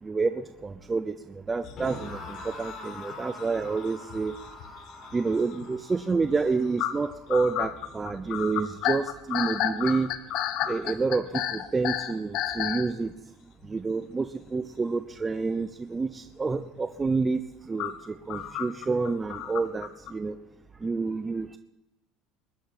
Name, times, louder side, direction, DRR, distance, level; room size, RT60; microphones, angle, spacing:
voice 1, 0.0-4.4 5.1-10.1 10.7-13.1 13.6-20.4 20.8-21.6, right 4 dB, 15° right, 9 dB, 0.7 m, -29 dB
sound 1, 1.6-3.3 3.6-5.2 5.6-5.8 6.1-6.2 6.8-12.9 13.6-13.7 15.6-15.7 17.8-20.1, left 11 dB, 60° left, 1.2 m, -31 dB
sound 2, 1.8-8.9, left 3 dB, 35° left, 5.5 m, -45 dB
21.0 x 11.5 x 4.2 m, 0.96 s
cardioid pair, 130°, 0 cm